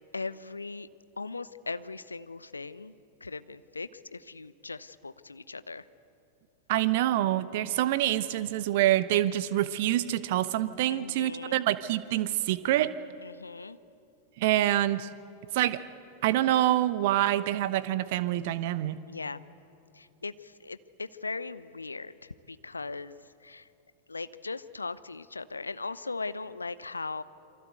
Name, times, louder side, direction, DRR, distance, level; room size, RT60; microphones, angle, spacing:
voice 1, 0.1-0.9 1.2-2.9 3.2-5.8 10.9-11.7 13.2-13.8 19.1-19.4 19.9-20.3 20.6-22.1 22.5-23.2 23.4-23.6 24.1-27.2, left 3 dB, 80° left, 15 dB, 0.7 m, -38 dB
voice 2, 6.7-12.9 14.4-15.1 15.5-15.8 16.2-19.0, right 14 dB, 50° right, 15 dB, 1.0 m, -26 dB
27.5 x 24.0 x 8.1 m, 2.6 s
figure-of-eight pair, 90°, 0 cm